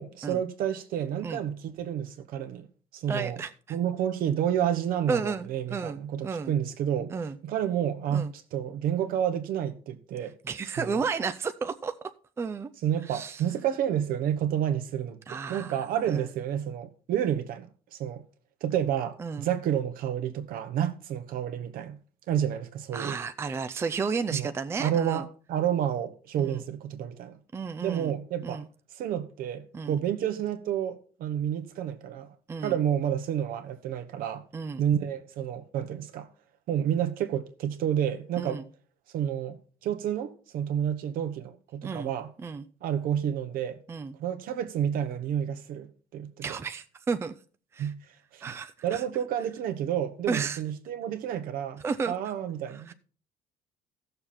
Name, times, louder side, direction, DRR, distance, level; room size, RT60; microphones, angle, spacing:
voice 1, 0.0-2.7 2.9-3.4 3.7-7.1 7.4-10.3 10.8-11.0 12.8-18.2 18.6-22.0 22.3-23.2 24.3-24.5 24.8-27.4 27.8-28.6 28.9-32.3 32.6-34.4 34.8-36.3 36.7-38.6 39.1-39.6 39.8-42.3 42.8-43.8 44.2-46.6 47.8-48.0 48.3-48.4 48.8-52.9, right 10 dB, 70° right, 1.1 m, -30 dB
voice 2, 3.1-3.8 5.1-6.5 7.1-7.4 8.1-8.3 10.4-11.9 12.4-12.7 13.1-13.4 15.3-15.8 16.1-16.3 19.2-19.5 22.9-25.2 26.4-26.6 27.5-28.2 28.4-28.7 29.7-30.0 32.5-32.8 34.5-34.8 38.4-38.6 41.8-42.1 42.4-42.7 43.9-44.2 46.4-47.3 47.7-47.9 48.4-49.0 50.3-50.6 51.8-52.2 52.7-52.9, right 5 dB, 15° right, 0.4 m, -33 dB
15.0 x 6.8 x 4.3 m
cardioid pair, 155°, 16 cm